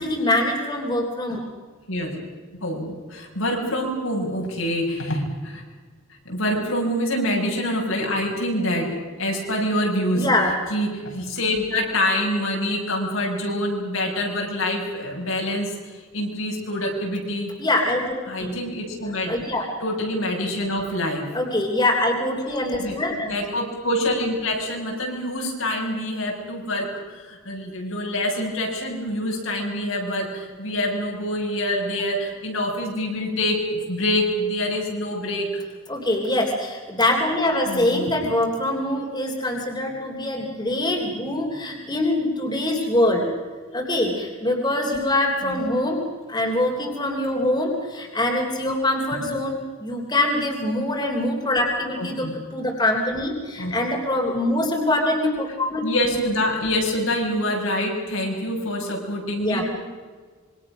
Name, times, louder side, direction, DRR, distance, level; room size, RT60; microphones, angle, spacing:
voice 1, 0.0-1.4 10.1-10.5 17.6-18.6 19.3-19.7 21.3-23.3 35.9-43.3 43.7-46.0 46.3-55.8 59.4-59.6, left 1 dB, 20° left, 1 dB, 3.4 m, -24 dB
voice 2, 2.6-5.6 6.2-10.3 10.7-15.7 16.1-17.5 18.3-19.4 19.8-21.2 22.8-23.0 23.3-35.6 37.6-38.1 45.4-45.6 52.0-52.3 53.6-53.8 55.8-59.6, left 1 dB, 80° left, 0 dB, 6.8 m, -26 dB
26.5 x 24.0 x 6.3 m, 1.5 s
head